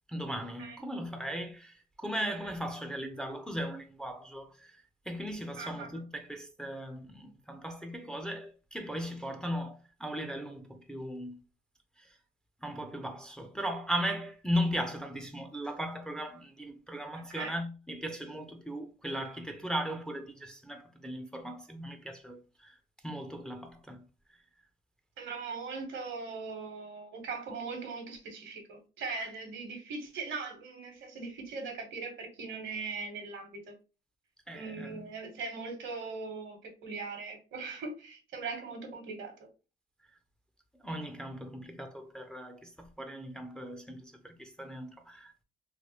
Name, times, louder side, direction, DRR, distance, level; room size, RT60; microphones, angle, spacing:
voice 1, 0.1-11.4 12.0-12.2 12.6-22.8 23.0-24.0 29.2-29.3 34.5-35.1 40.8-45.4, equal, 5° left, 0.4 m, -37 dB
voice 2, 5.6-5.9 17.1-17.5 25.2-33.7 34.5-39.3, right 4 dB, 70° right, 1.0 m, -40 dB
3.2 x 2.1 x 2.8 m
cardioid pair, 90°, 20 cm